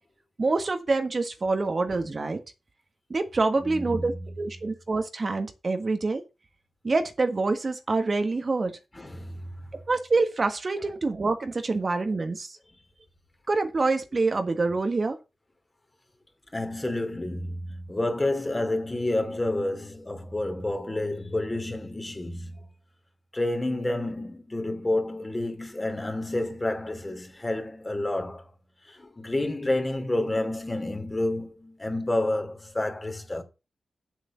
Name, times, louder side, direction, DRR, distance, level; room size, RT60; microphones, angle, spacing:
voice 1, 0.4-2.4 3.1-6.2 6.8-8.7 9.9-12.6 13.5-15.2, right 3 dB, 45° right, 1.6 m, -26 dB
voice 2, 3.6-4.1 8.9-9.4 16.5-22.5 23.3-28.5 28.9-33.4, left 1 dB, 25° left, 2.8 m, -29 dB
8.1 x 7.7 x 7.0 m
cardioid pair, 80°, 0 cm